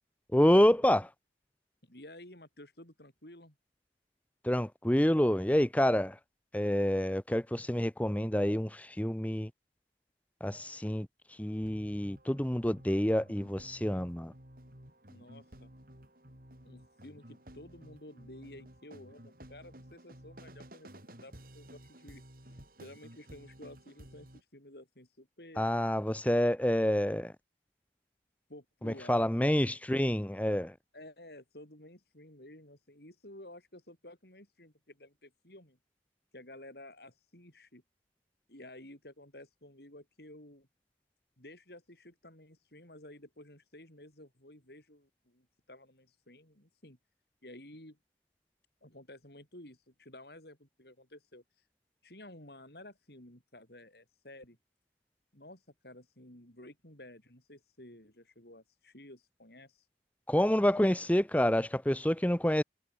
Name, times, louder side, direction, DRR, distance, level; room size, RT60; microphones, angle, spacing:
voice 1, 0.3-1.1 4.4-6.2 6.5-9.5 10.4-11.1 11.4-14.3 25.6-27.3 28.8-30.7 60.3-62.6, equal, 10° left, 0.8 m, -28 dB
voice 2, 1.8-3.5 15.1-15.7 16.6-25.6 28.5-29.5 30.9-35.8 36.3-37.8 38.5-40.7 41.4-47.0 47.4-48.0 48.8-51.4 52.0-54.6 55.3-59.8 60.7-60.9, left 1 dB, 60° left, 6.6 m, -53 dB
sound 1, 11.5-24.4, right 1 dB, 50° right, 5.9 m, -54 dB
head